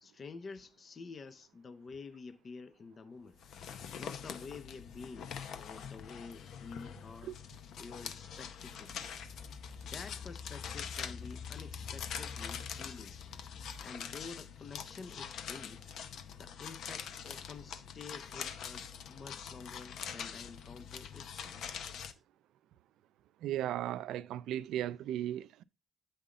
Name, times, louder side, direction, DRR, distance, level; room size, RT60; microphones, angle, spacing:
voice 1, 0.0-3.4 4.0-7.3 7.8-9.0 9.8-13.2 13.8-15.8 16.4-21.6, left 4 dB, 45° left, 0.7 m, -49 dB
sound 1, 3.4-22.1, left 8 dB, 75° left, 0.7 m, -44 dB
Engine, 8.4-14.3, left 5 dB, 5° left, 1.5 m, -48 dB
voice 2, 23.4-25.6, right 12 dB, 85° right, 0.4 m, -36 dB
8.5 x 5.5 x 3.7 m
cardioid pair, 90°, 0 cm